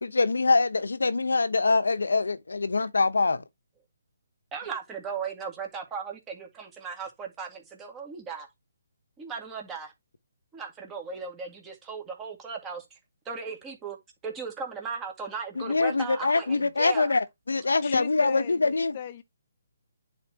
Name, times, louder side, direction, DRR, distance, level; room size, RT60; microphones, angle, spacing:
voice 1, 0.0-3.4 15.6-19.0, left 3 dB, 85° left, 1.0 m, -24 dB
voice 2, 4.5-8.5 9.2-9.9 10.5-13.0 13.3-14.0 14.2-17.1, right 5 dB, 15° right, 2.2 m, -37 dB
voice 3, 17.8-19.2, left 10 dB, 35° left, 0.9 m, -38 dB
10.0 x 4.4 x 2.9 m
hypercardioid pair, 150°, 0 cm